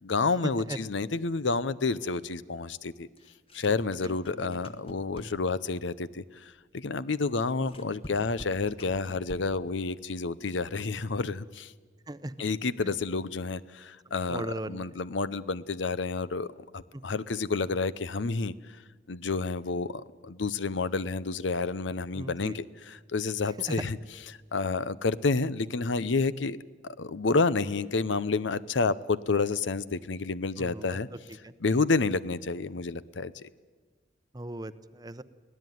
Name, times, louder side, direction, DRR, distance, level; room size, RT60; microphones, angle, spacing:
voice 1, 0.0-3.1 3.5-11.7 12.4-18.5 19.1-24.0 24.3-26.6 26.8-31.1 31.6-33.5, left 4 dB, 80° left, 17 dB, 0.7 m, -29 dB
sound 1, 3.2-5.6 7.3-9.7, equal, 30° left, 1.2 m, -46 dB
voice 2, 14.3-14.9 22.2-22.6 23.7-23.8 30.6-31.0 31.4-31.5 34.3-35.2, right 1 dB, 20° right, 13 dB, 0.7 m, -38 dB
23.5 x 17.0 x 9.4 m, 1.4 s
head